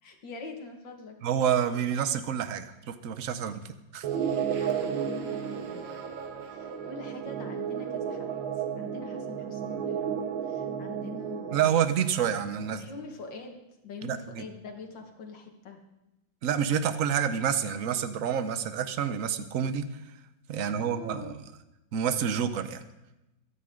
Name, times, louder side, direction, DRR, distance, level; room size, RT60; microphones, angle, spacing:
voice 1, 0.0-1.2 4.6-4.7 5.0-5.9 6.4-8.3 8.8-11.8 12.6-13.6 13.8-15.8 20.5-21.4, left 3 dB, 75° left, 3 dB, 2.3 m, -44 dB
voice 2, 1.2-4.1 11.5-12.9 14.0-14.4 16.4-19.9 20.5-21.4 21.9-22.8, right 8 dB, 55° right, 11 dB, 1.0 m, -28 dB
sound 1, 4.0-11.6, right 8 dB, 85° right, 1.9 m, -33 dB
22.5 x 9.5 x 3.8 m, 0.95 s
omnidirectional pair, 2.0 m